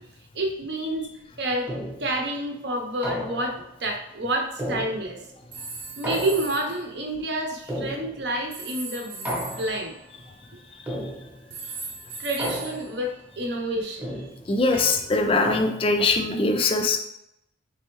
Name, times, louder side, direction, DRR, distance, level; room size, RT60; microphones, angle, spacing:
voice 1, 0.3-1.1 1.4-1.7 2.0-5.2 6.0-9.9 12.2-14.2, right 1 dB, 55° right, 1 dB, 0.8 m, -29 dB
sound 1, 1.7-2.2 3.0-3.7 4.6-5.4 6.0-6.8 7.7-8.4 9.3-10.0 10.9-11.5 12.4-13.1 14.0-16.1, equal, 10° right, 0.8 m, -34 dB
sound 2, 5.5-6.8 8.5-11.0 11.5-13.8, right 4 dB, 90° right, 0.9 m, -39 dB
voice 2, 14.5-17.0, left 3 dB, 25° left, 5 dB, 0.4 m, -22 dB
4.4 x 3.4 x 3.1 m, 0.78 s
head